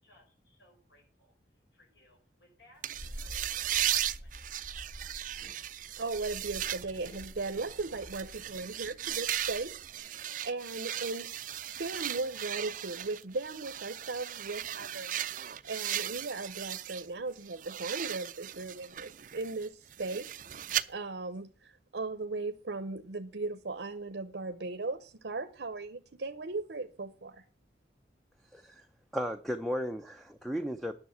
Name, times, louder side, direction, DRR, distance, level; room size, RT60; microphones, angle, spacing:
voice 1, 0.0-4.5, left 2 dB, 70° left, 1 dB, 5.1 m, -64 dB
sound 1, 2.8-17.1 17.4-20.8, right 11 dB, 45° right, 0.5 m, -37 dB
sound 2, 2.9-10.0, equal, 45° left, 4.4 m, -49 dB
voice 2, 6.0-27.4, right 3 dB, 75° right, 9 dB, 0.8 m, -38 dB
voice 3, 28.5-28.9 29.1-30.9, equal, ahead, 7 dB, 0.6 m, -35 dB
9.7 x 6.5 x 7.6 m, 0.37 s
head